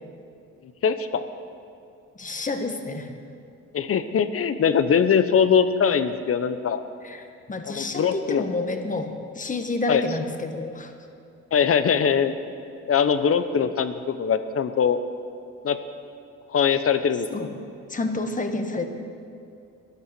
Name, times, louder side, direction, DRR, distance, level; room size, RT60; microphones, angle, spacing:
voice 1, 0.8-1.2 3.7-6.8 7.6-8.4 9.9-10.0 11.5-12.3 12.9-15.0 15.6-15.8 16.5-17.3, left 7 dB, 50° left, 11 dB, 0.9 m, -22 dB
voice 2, 2.2-3.1 7.0-10.9 17.3-17.5 17.9-18.9, left 3 dB, 25° left, 6 dB, 1.4 m, -29 dB
13.0 x 11.0 x 6.8 m, 2.5 s
cardioid pair, 90°, 30 cm